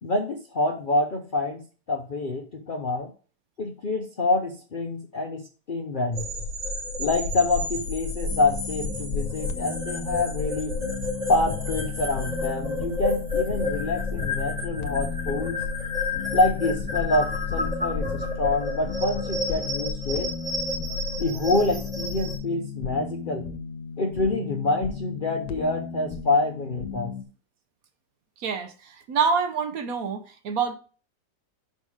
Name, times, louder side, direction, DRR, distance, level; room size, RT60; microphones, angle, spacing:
voice 1, 0.0-3.1 3.6-6.3 7.0-10.8 11.3-15.6 16.3-20.3 21.2-23.5 24.0-27.1, left 2 dB, 55° left, 0.5 m, -26 dB
sound 1, 6.1-22.4, left 3 dB, 45° right, 3.7 m, -30 dB
sound 2, 8.3-27.2, left 6 dB, 90° left, 1.3 m, -36 dB
voice 2, 28.4-30.8, right 5 dB, 65° right, 1.1 m, -26 dB
5.5 x 5.3 x 4.8 m
omnidirectional pair, 1.8 m